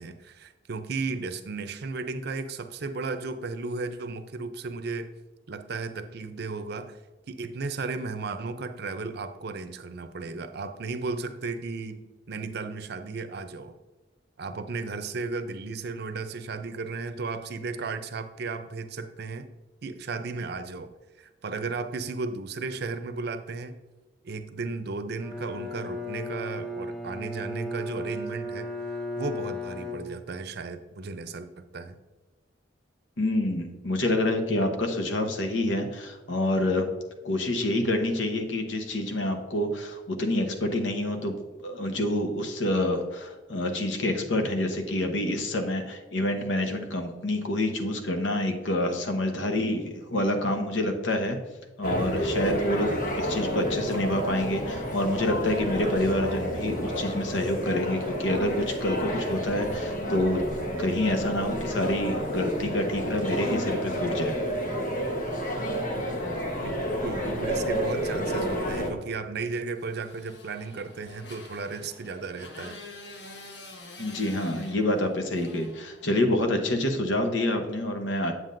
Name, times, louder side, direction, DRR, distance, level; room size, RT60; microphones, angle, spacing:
voice 1, 0.0-5.1 5.5-7.0 7.3-13.8 14.4-19.5 19.8-20.9 21.2-23.8 24.2-28.7 29.2-32.0 51.9-52.1 66.0-72.8, right 4 dB, 60° right, 9 dB, 0.5 m, -35 dB
Bowed string instrument, 25.2-30.6, left 1 dB, 5° left, 0.6 m, -35 dB
voice 2, 33.2-36.9 37.2-41.4 41.6-51.4 51.8-60.4 60.8-64.3 74.0-78.3, left 1 dB, 90° left, 5 dB, 1.0 m, -27 dB
sound 1, 51.8-68.9, equal, 45° left, 1.2 m, -30 dB
Motorcycle, 69.8-76.5, left 2 dB, 65° left, 1.1 m, -47 dB
7.9 x 7.4 x 2.6 m, 1.2 s
head